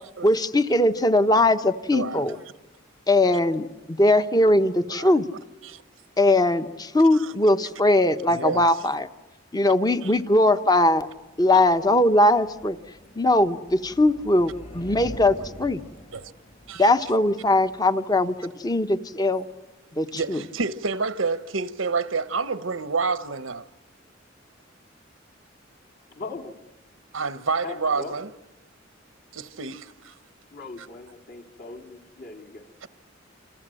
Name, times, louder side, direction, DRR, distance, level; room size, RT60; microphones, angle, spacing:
voice 1, 0.2-2.4 3.1-5.2 6.2-9.1 9.5-11.1 11.4-12.8 13.2-15.8 16.8-19.5 19.9-20.4, left 1 dB, 20° left, 1.0 m, -20 dB
voice 2, 1.9-2.2 4.9-5.1 5.6-5.8 7.1-7.3 8.3-8.8 10.0-10.1 16.1-16.3 16.7-16.9 20.1-23.6 27.1-28.3 29.3-30.1, right 4 dB, 90° right, 1.0 m, -28 dB
sound 1, 10.6-19.5, equal, 35° left, 5.0 m, -46 dB
voice 3, 26.1-26.6 27.6-28.2 30.5-32.7, left 3 dB, 55° left, 3.1 m, -39 dB
28.5 x 26.5 x 7.7 m
head